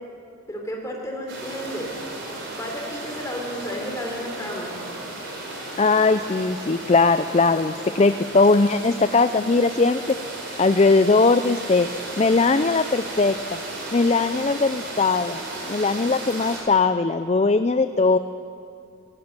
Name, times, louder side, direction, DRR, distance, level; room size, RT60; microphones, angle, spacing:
voice 1, 0.5-1.9 2.5-4.7, equal, 15° left, 0 dB, 3.6 m, -32 dB
sound 1, 1.3-16.6, right 2 dB, 55° right, 4.6 m, -35 dB
voice 2, 5.8-10.1 10.6-11.9 12.2-13.3 13.9-15.4 15.7-18.2, left 3 dB, 30° left, 11 dB, 0.4 m, -19 dB
18.5 x 16.5 x 9.6 m, 2.5 s
head